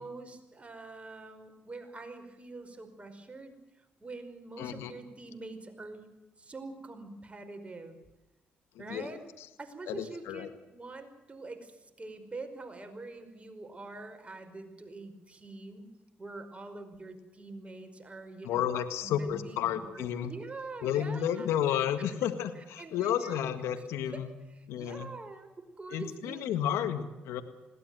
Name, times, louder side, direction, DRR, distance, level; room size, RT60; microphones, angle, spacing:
voice 1, 0.0-3.5 4.0-6.1 6.4-8.0 8.8-9.2 9.6-15.9 16.2-18.7 19.0-21.5 22.8-23.4 24.1-24.2 24.5-26.5, right 3 dB, 25° right, 6 dB, 5.1 m, -45 dB
voice 2, 4.6-4.9 8.9-9.1 9.9-10.5 18.4-20.3 20.8-24.3 24.7-25.1 25.9-27.4, left 10 dB, 80° left, 9 dB, 1.8 m, -31 dB
21.0 x 17.5 x 7.8 m, 1.1 s
supercardioid pair, 55°, 4 cm